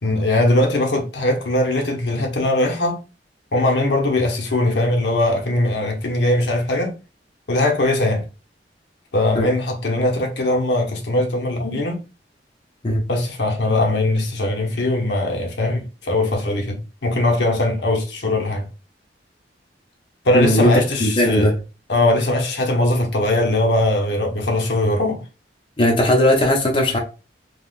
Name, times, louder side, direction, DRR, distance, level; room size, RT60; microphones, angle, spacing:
voice 1, 0.0-3.0 3.5-6.9 7.5-8.3 9.1-12.0 13.1-18.7 20.2-21.5 21.9-25.2, left 1 dB, 75° left, 0.8 m, -20 dB
voice 2, 20.3-20.7 21.0-21.5 25.8-27.0, left 1 dB, 30° left, 0.6 m, -17 dB
3.6 x 2.3 x 2.4 m
head